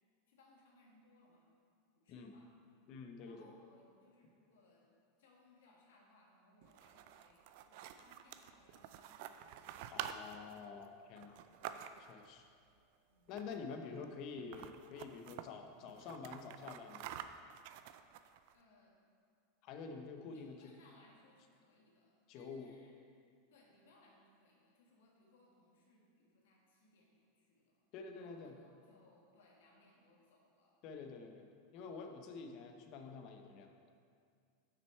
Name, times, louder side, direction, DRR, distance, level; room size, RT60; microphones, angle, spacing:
voice 1, 0.3-1.4 1.9-2.5 3.2-4.8 5.2-9.7 11.9-12.2 13.1-13.3 18.5-18.9 20.3-23.1 23.5-27.7 28.1-30.8 31.7-32.1, left 2 dB, 85° left, -2 dB, 1.7 m, -67 dB
voice 2, 2.9-3.5 9.9-11.4 12.1-12.4 13.3-17.1 19.6-20.8 22.3-22.8 27.9-28.5 30.8-31.5 31.7-33.8, left 5 dB, 40° left, 5 dB, 0.6 m, -48 dB
sound 1, 6.6-12.3 13.3-13.7 14.0-14.1 14.4-15.5 15.9-18.5, right 10 dB, 55° right, 0.3 m, -49 dB
6.4 x 5.9 x 4.5 m, 2.2 s
supercardioid pair, 155°, 0 cm